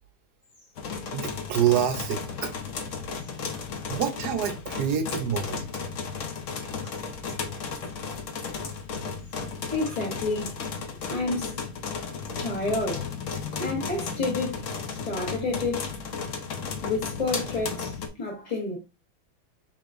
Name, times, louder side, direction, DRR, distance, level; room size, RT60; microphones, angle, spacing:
sound 1, 0.8-18.1, left 5 dB, 65° left, 0.8 m, -34 dB
voice 1, 1.1-2.5 3.9-5.6 6.6-6.7, right 9 dB, 65° right, 1.1 m, -27 dB
voice 2, 9.7-10.6 11.1-11.5 12.4-13.1 13.6-15.9 16.8-18.8, left 2 dB, 20° left, 1.3 m, -30 dB
5.0 x 3.6 x 2.5 m
omnidirectional pair, 2.1 m